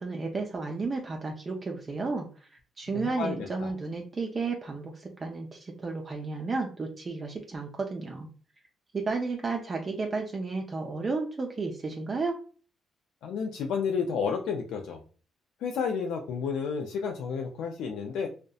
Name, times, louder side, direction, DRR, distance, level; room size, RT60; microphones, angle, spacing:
voice 1, 0.0-2.3 2.8-8.3 8.9-12.4, right 3 dB, 35° right, 1 dB, 0.4 m, -32 dB
voice 2, 3.0-3.7 13.2-15.0 15.6-18.3, left 6 dB, 85° left, 2 dB, 0.3 m, -31 dB
2.7 x 2.1 x 2.2 m, 0.39 s
cardioid pair, 90°, 0 cm